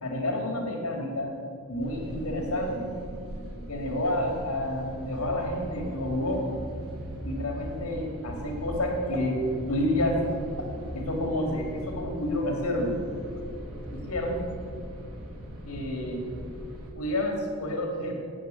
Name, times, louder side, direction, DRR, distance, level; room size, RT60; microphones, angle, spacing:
voice 1, 0.0-1.3 1.7-2.9 3.7-6.4 7.0-13.0 13.9-14.4 15.7-16.2 16.9-18.2, left 1 dB, 75° left, 2 dB, 2.8 m, -29 dB
sound 1, 1.8-16.9, equal, 90° right, 4.7 m, -40 dB
20.0 x 8.8 x 7.9 m, 2.4 s
head